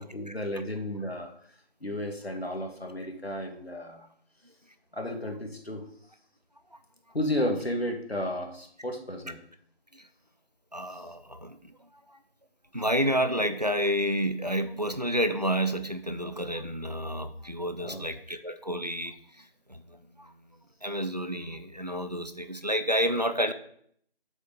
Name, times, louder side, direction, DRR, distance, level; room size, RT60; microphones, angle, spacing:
voice 1, 0.0-1.3 1.8-4.1 4.9-5.9 7.1-9.4 10.9-11.0 17.8-18.0, left 1 dB, 75° left, 3 dB, 2.3 m, -33 dB
voice 2, 10.7-11.7 12.7-19.1 19.7-20.3 20.8-23.5, equal, 40° right, 9 dB, 0.7 m, -29 dB
8.0 x 6.9 x 5.3 m, 0.64 s
figure-of-eight pair, 175°, 31 cm